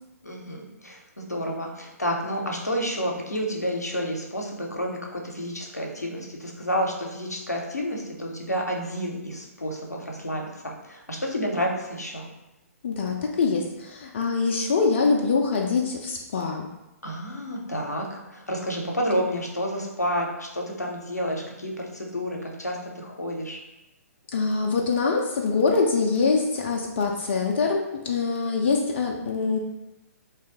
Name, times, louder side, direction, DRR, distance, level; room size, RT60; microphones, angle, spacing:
voice 1, 0.2-12.3 17.0-23.6, equal, 85° left, 0 dB, 0.6 m, -30 dB
voice 2, 12.8-16.7 24.3-29.6, left 4 dB, 45° left, 0 dB, 0.3 m, -24 dB
3.1 x 2.2 x 2.8 m, 0.95 s
figure-of-eight pair, 125°, 9 cm